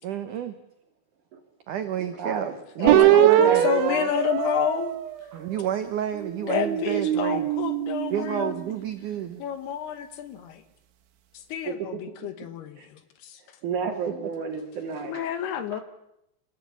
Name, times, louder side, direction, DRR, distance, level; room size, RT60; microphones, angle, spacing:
voice 1, 0.0-0.5 1.7-3.7 5.3-7.5 8.1-9.4 13.9-14.0, right 10 dB, 70° right, 1.9 m, -30 dB
voice 2, 2.2-2.5 2.8-4.1 5.3-5.4 11.6-11.7 12.8-12.9 13.6-15.3 15.7-15.8, right 6 dB, 50° right, 3.1 m, -30 dB
voice 3, 2.8-4.9 6.5-8.5 9.4-10.6 11.3-13.4 15.0-15.8, left 9 dB, 70° left, 3.1 m, -30 dB
sound 1, 2.9-5.6 6.1-8.6, right 12 dB, 90° right, 3.9 m, -22 dB
27.5 x 15.0 x 8.4 m
omnidirectional pair, 5.1 m